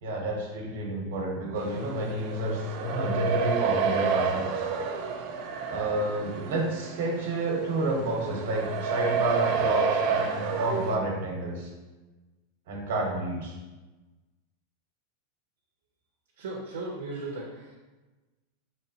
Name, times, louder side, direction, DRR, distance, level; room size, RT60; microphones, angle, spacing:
voice 1, 0.0-4.6 5.7-11.7 12.7-13.5, right 2 dB, 70° right, 0 dB, 1.1 m, -30 dB
sound 1, 1.6-11.0, right 6 dB, 50° right, 0.4 m, -30 dB
voice 2, 16.4-17.8, right 2 dB, 90° right, -2 dB, 0.6 m, -36 dB
4.1 x 3.0 x 2.8 m, 1.2 s
supercardioid pair, 150°, 0 cm